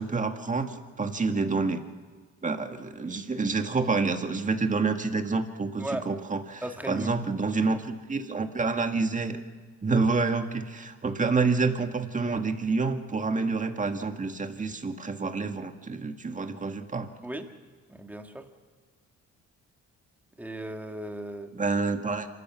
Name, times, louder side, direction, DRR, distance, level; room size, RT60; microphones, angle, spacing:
voice 1, 0.0-1.8 2.4-6.6 6.9-9.4 9.8-17.1 21.5-22.3, right 4 dB, 25° right, 6 dB, 1.8 m, -28 dB
voice 2, 5.8-6.1 6.6-7.1 7.6-7.8 17.2-17.5 17.9-18.5 20.4-21.5, right 1 dB, 5° right, 4 dB, 2.0 m, -36 dB
26.5 x 14.0 x 7.0 m, 1.5 s
cardioid pair, 90°, 30 cm